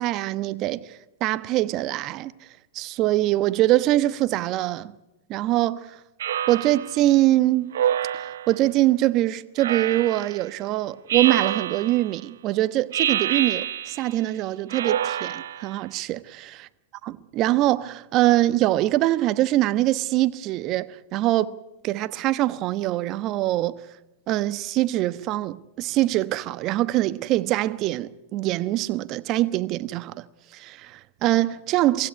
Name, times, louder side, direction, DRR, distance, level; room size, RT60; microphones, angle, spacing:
voice 1, 0.0-2.3 2.7-4.9 5.3-6.0 6.5-7.7 8.1-16.7 17.0-21.5 21.8-23.8 24.3-30.2 30.5-32.1, right 15 dB, 40° right, 1.1 m, -23 dB
Speech synthesizer, 6.2-7.0 7.7-8.6 9.6-10.4 11.1-12.1 12.9-14.1 14.7-15.7, right 10 dB, 70° right, 0.8 m, -27 dB
24.5 x 16.0 x 9.5 m
hypercardioid pair, 105°, 0 cm